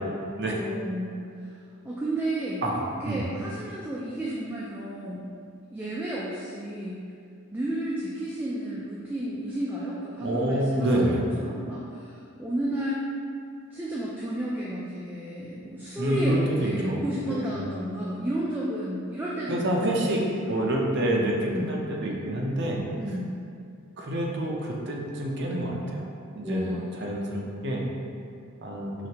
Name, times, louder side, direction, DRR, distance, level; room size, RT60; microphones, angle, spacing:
voice 1, 0.5-1.2 1.8-5.2 5.7-7.0 7.5-13.0 13.7-20.5 21.5-21.7 23.0-23.4 26.4-27.1, right 1 dB, 10° right, -6 dB, 0.3 m, -32 dB
voice 2, 10.2-11.2 16.0-17.0 17.3-17.5 19.5-20.2 20.5-22.8 24.0-26.1 26.3-27.8 28.6-28.9, right 1 dB, 50° right, -2 dB, 0.6 m, -27 dB
4.9 x 3.2 x 2.9 m, 2.3 s
head